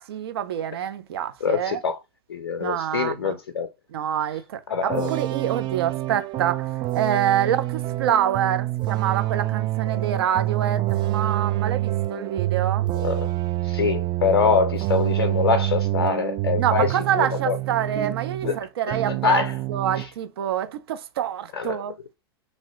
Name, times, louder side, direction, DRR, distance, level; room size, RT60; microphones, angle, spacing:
voice 1, 0.0-1.8 2.6-3.4 3.9-12.9 16.6-21.9, right 10 dB, 75° right, 0.6 m, -26 dB
voice 2, 1.4-2.0 2.3-3.7 4.7-5.1 13.0-13.3 13.6-17.6 18.4-18.5 18.9-19.0 19.2-19.6 20.0-20.1 21.5-21.8, left 5 dB, 85° left, 0.5 m, -24 dB
sound 1, 4.9-18.6 18.9-20.1, right 16 dB, 35° right, 0.4 m, -26 dB
2.9 x 2.6 x 3.1 m
hypercardioid pair, 100°, 13 cm